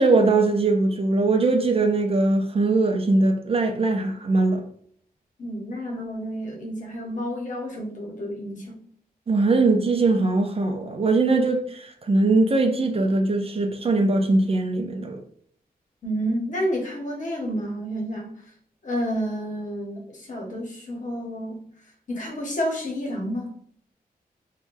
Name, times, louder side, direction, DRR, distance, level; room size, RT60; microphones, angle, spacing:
voice 1, 0.0-4.6 9.3-15.2, right 3 dB, 40° right, 0.4 m, -21 dB
voice 2, 5.4-8.8 16.0-18.3 18.8-21.6 22.1-23.5, equal, 50° left, 0.9 m, -30 dB
3.2 x 2.2 x 2.5 m
wide cardioid pair, 155°, 16 cm